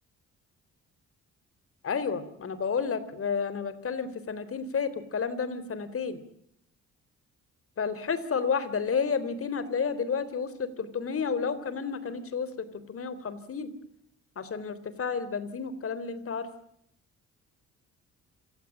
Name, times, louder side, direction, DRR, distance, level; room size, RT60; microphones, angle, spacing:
voice 1, 1.8-6.2 7.8-13.7 14.4-16.5, left 6 dB, 50° left, 14 dB, 3.7 m, -31 dB
27.5 x 16.5 x 9.9 m, 0.73 s
cardioid pair, 90°, 30 cm